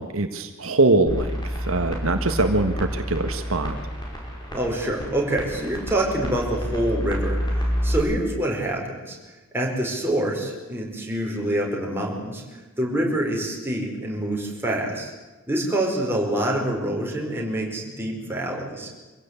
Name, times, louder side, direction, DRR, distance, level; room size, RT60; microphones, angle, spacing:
voice 1, 0.0-3.8, right 2 dB, 70° right, 7 dB, 1.6 m, -23 dB
sound 1, 1.1-8.0, equal, 20° left, 5.3 m, -29 dB
voice 2, 4.5-9.1 9.5-12.4 12.8-15.1 15.5-18.9, right 1 dB, 10° right, -1 dB, 5.0 m, -26 dB
25.0 x 16.5 x 8.4 m, 1.2 s
head